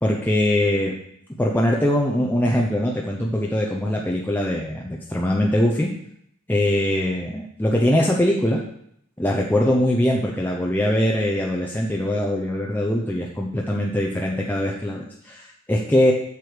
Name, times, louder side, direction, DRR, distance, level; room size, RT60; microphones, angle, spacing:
voice 1, 0.0-0.9 1.4-5.9 6.5-8.6 9.2-16.1, left 1 dB, 10° left, -2 dB, 0.8 m, -22 dB
7.9 x 6.8 x 5.0 m, 0.71 s
head